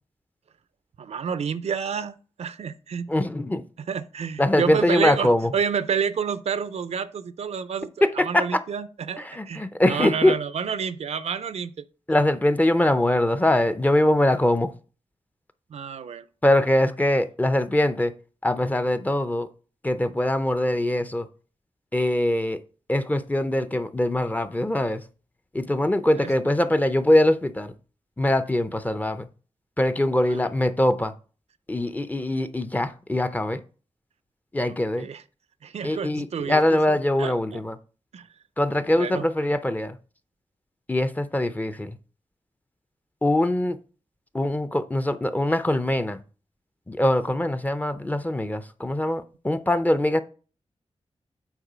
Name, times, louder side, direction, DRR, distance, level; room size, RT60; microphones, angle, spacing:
voice 1, 1.0-3.1 3.9-7.9 8.2-11.7 15.7-16.2 26.2-26.3 30.3-30.4 34.6-35.2 35.6-37.6 38.1-38.3 38.9-39.2, right 6 dB, 80° right, 0.5 m, -29 dB
voice 2, 3.1-3.6 4.4-5.5 8.0-8.6 9.2-10.4 12.1-14.7 16.4-18.1 18.4-19.5 19.8-21.3 21.9-22.6 22.9-25.0 25.5-27.7 28.2-29.3 29.8-31.1 31.7-33.6 34.5-35.1 35.8-37.8 38.6-40.0 40.9-42.0 43.2-43.8 44.3-46.2 46.9-50.2, left 1 dB, 15° left, 0.5 m, -22 dB
8.2 x 3.8 x 4.9 m
wide cardioid pair, 110°, 11 cm